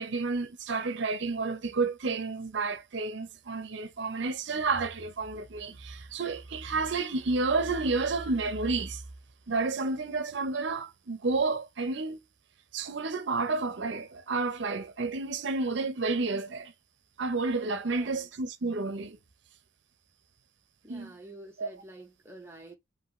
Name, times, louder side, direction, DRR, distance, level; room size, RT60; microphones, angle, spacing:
voice 1, 0.0-9.0 9.5-12.2 12.7-16.7 17.2-19.2 20.9-21.1 21.6-21.7, right 3 dB, 60° right, 0.6 m, -30 dB
voice 2, 17.9-18.3 20.8-22.8, right 1 dB, 10° right, 0.7 m, -48 dB
5.3 x 2.6 x 3.0 m
head